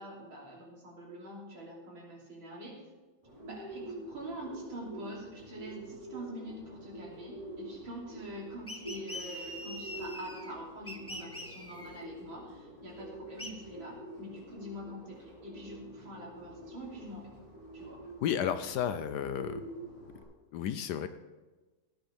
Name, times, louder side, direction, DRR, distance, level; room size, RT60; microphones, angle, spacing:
voice 1, 0.0-2.8 3.4-17.3 17.7-18.0, right 1 dB, 90° right, -3 dB, 3.8 m, -45 dB
Bird, 3.2-20.2, right 1 dB, 15° right, 5.1 m, -47 dB
sound 1, 8.7-10.5 10.9-12.0 13.4-13.5, left 1 dB, 10° left, 0.7 m, -43 dB
voice 2, 18.2-19.6 20.5-21.1, left 9 dB, 70° left, 11 dB, 1.0 m, -32 dB
17.5 x 9.9 x 3.4 m, 1.2 s
omnidirectional pair, 2.1 m